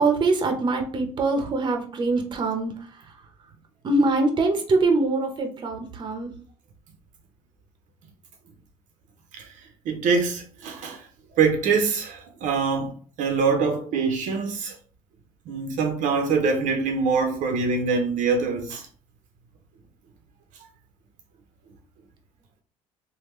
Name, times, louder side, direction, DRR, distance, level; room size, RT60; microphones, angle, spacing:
voice 1, 0.0-2.7 3.8-6.3, right 3 dB, 35° right, 0.8 m, -23 dB
voice 2, 9.9-11.0 11.3-14.7 15.5-18.9, right 5 dB, 65° right, 0.7 m, -24 dB
3.5 x 2.2 x 3.0 m
supercardioid pair, 95°, 14 cm